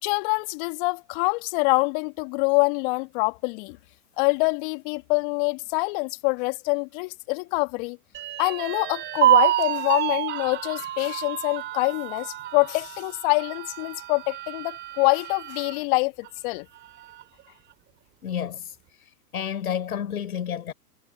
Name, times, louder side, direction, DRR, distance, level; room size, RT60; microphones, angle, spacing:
voice 1, 0.0-3.8 4.2-8.0 8.4-16.7, left 32 dB, 35° left, 1.9 m, -25 dB
sound 1, 8.1-15.8 16.2-16.3 16.7-17.4, right 13 dB, 25° right, 4.2 m, -27 dB
voice 2, 18.2-18.6 19.3-20.7, left 9 dB, 65° left, 7.2 m, -30 dB
hypercardioid pair, 125°, 47 cm